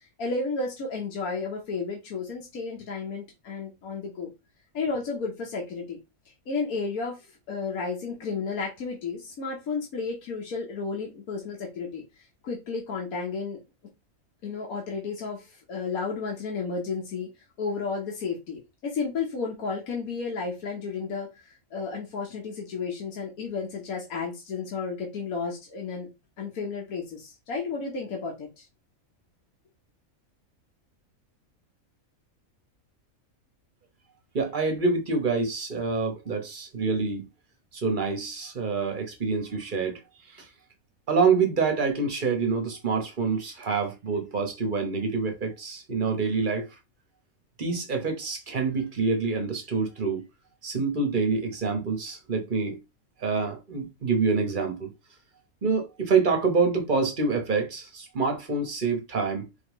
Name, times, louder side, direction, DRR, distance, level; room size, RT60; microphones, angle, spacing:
voice 1, 0.2-4.3 4.7-6.0 6.5-12.0 12.4-13.6 14.4-17.3 17.6-26.1 26.4-28.7, left 4 dB, 80° left, 1.6 m, -32 dB
voice 2, 34.3-37.3 37.7-40.0 40.3-40.5 41.1-46.7 47.6-50.2 50.6-52.8 53.2-54.9 55.6-59.5, right 4 dB, 40° right, 1.1 m, -26 dB
4.3 x 3.6 x 3.1 m
omnidirectional pair, 1.5 m